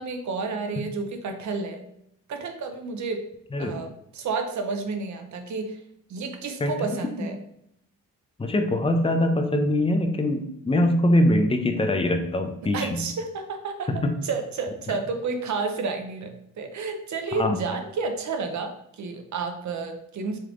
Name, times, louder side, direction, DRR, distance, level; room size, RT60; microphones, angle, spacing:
voice 1, 0.0-1.9 2.3-3.2 3.6-5.8 6.1-7.4 12.7-20.4, right 4 dB, 55° right, 6 dB, 0.7 m, -31 dB
voice 2, 8.4-13.0 13.9-14.1 17.3-17.6, left 1 dB, 15° left, 5 dB, 0.5 m, -23 dB
3.2 x 3.2 x 2.5 m, 0.76 s
cardioid pair, 65°, 34 cm